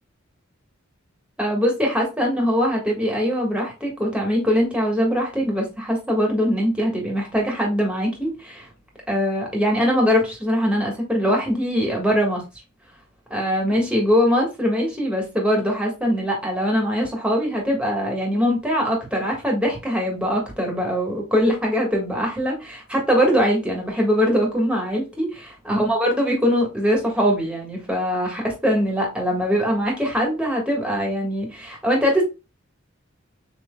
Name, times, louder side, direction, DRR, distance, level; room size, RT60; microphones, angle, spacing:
voice 1, 1.4-8.7 9.1-12.4 13.3-32.2, equal, 5° right, 1.6 m, -22 dB
6.9 x 3.1 x 2.3 m
head